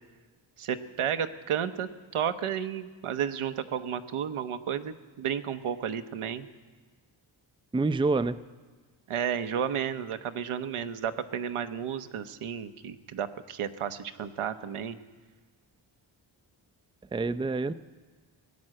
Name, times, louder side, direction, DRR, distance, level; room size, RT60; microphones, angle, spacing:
voice 1, 0.6-6.5 9.1-15.0, right 8 dB, 80° right, 10 dB, 0.9 m, -32 dB
voice 2, 7.7-8.4 17.1-17.7, right 3 dB, 10° right, 12 dB, 0.5 m, -27 dB
17.0 x 9.6 x 7.6 m, 1.4 s
cardioid pair, 50°, 50 cm